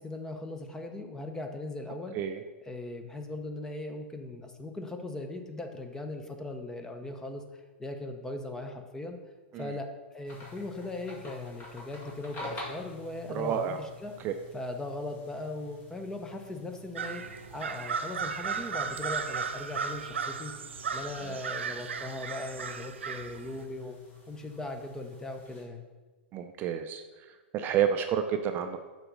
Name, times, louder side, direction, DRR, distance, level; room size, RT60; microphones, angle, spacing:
voice 1, 0.0-2.2 2.7-7.4 7.8-9.2 9.6-14.1 14.5-17.2 17.5-20.5 20.9-24.0 24.3-25.8, left 2 dB, 10° left, 5 dB, 0.7 m, -39 dB
sound 1, 10.3-25.6, left 3 dB, 35° left, 2.2 m, -49 dB
voice 2, 13.3-13.8 14.2-14.3 21.3-21.4 26.3-27.0 27.5-28.8, right 8 dB, 30° right, 6 dB, 0.4 m, -29 dB
sound 2, 17.0-23.6, right 6 dB, 90° right, 0.5 m, -35 dB
6.8 x 4.0 x 5.1 m, 1.3 s
hypercardioid pair, 120°, 6 cm